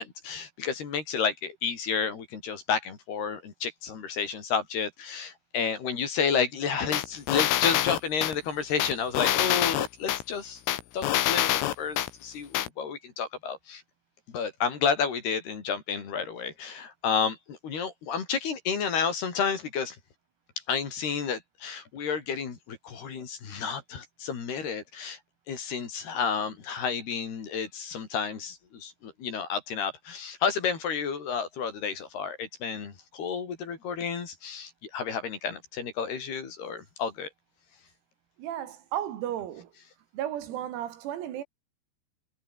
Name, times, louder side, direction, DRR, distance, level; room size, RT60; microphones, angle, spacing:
voice 1, 0.0-10.6 10.9-11.5 11.8-13.8 14.3-20.0 20.7-25.2 25.5-37.3, left 6 dB, 50° left, 5.6 m, -31 dB
sound 1, 6.9-8.3 8.8-10.2 10.7-12.1 12.5-12.7, left 13 dB, 75° left, 4.3 m, -25 dB
voice 2, 38.4-39.7 40.1-41.4, right 11 dB, 90° right, 5.3 m, -34 dB
omnidirectional pair, 6.0 m